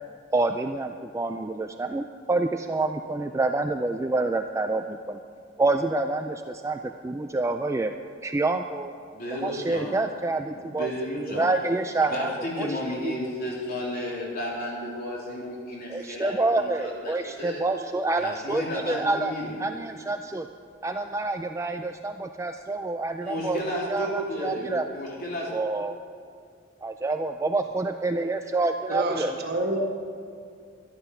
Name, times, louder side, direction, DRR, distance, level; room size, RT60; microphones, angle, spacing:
voice 1, 0.3-5.2 5.6-7.9 8.2-8.9 9.4-12.3 12.6-12.7 13.0-13.2 15.9-19.3 19.6-20.5 20.8-23.6 23.9-24.9 25.5-25.9 26.8-29.3, right 2 dB, 15° right, 6 dB, 0.3 m, -27 dB
voice 2, 9.1-10.0 10.5-11.5 12.1-17.6 18.2-19.6 23.2-25.5, equal, 50° left, -4 dB, 3.3 m, -33 dB
voice 3, 28.9-29.8, right 1 dB, 55° right, 1 dB, 1.6 m, -27 dB
12.5 x 11.5 x 5.8 m, 2.3 s
head